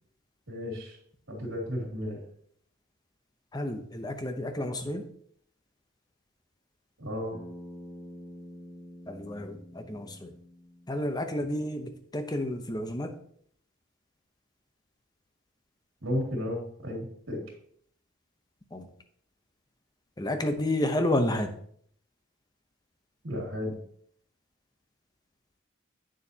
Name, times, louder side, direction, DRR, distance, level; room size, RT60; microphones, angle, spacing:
voice 1, 0.5-1.0 1.3-2.2 7.0-7.4 16.0-17.4 23.2-23.7, equal, 70° right, -4 dB, 2.7 m, -33 dB
voice 2, 3.5-5.1 9.1-10.3 10.9-13.1 18.7-18.9 20.2-21.5, left 1 dB, 20° left, 7 dB, 0.7 m, -30 dB
Bass guitar, 7.3-11.6, equal, 45° left, 2.9 m, -47 dB
8.7 x 7.0 x 2.8 m, 0.64 s
head